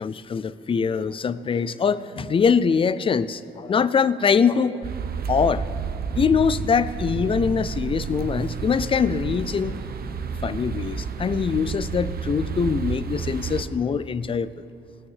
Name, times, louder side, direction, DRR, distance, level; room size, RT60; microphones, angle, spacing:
voice 1, 0.0-4.9 5.3-5.6 6.1-9.8 10.4-14.5, left 6 dB, 25° left, 17 dB, 0.4 m, -23 dB
sound 1, 4.8-13.6, right 6 dB, 50° right, 0.9 m, -30 dB
18.5 x 6.4 x 7.3 m, 2.8 s
cardioid pair, 90°, 20 cm